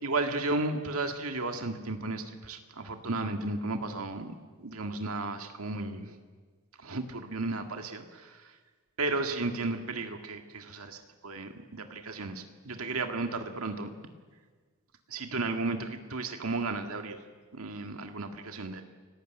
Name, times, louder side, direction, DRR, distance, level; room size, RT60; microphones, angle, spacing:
voice 1, 0.0-4.3 4.6-6.2 6.8-8.5 9.0-13.9 15.1-17.2 17.5-18.8, right 2 dB, 75° right, 5 dB, 1.9 m, -34 dB
29.5 x 19.0 x 9.1 m, 1.5 s
head